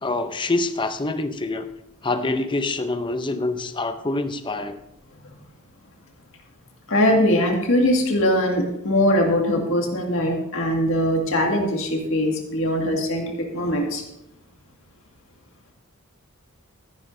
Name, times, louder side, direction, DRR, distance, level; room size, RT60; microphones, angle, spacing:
voice 1, 0.0-1.7 2.0-4.8, left 2 dB, 20° left, 9 dB, 0.6 m, -26 dB
voice 2, 6.9-14.0, equal, 65° left, 1 dB, 2.0 m, -21 dB
13.5 x 11.0 x 2.7 m, 0.86 s
head